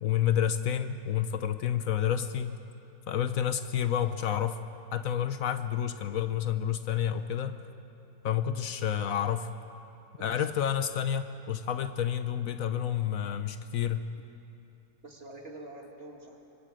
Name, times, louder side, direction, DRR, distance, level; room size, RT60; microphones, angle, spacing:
voice 1, 0.0-2.5 3.1-4.6 4.9-7.7 8.2-9.5 10.2-14.0, left 9 dB, 70° left, 10 dB, 1.1 m, -29 dB
voice 2, 15.0-16.5, right 2 dB, 40° right, 1 dB, 2.3 m, -46 dB
26.0 x 24.0 x 5.0 m, 2.8 s
omnidirectional pair, 1.6 m